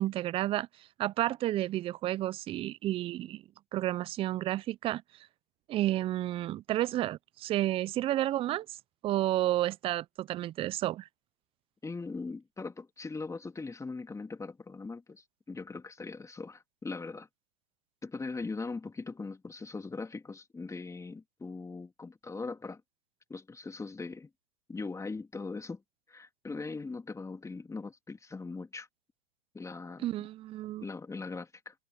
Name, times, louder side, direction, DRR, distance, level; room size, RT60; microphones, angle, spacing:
voice 1, 0.0-3.4 3.7-5.0 5.7-8.8 9.0-11.1 30.0-30.8, right 14 dB, 15° right, 0.5 m, -31 dB
voice 2, 11.8-17.3 18.0-22.8 23.3-24.3 24.7-25.8 26.1-28.9 29.5-30.0 30.8-31.7, left 3 dB, 10° left, 2.6 m, -40 dB
hypercardioid pair, 115°, 32 cm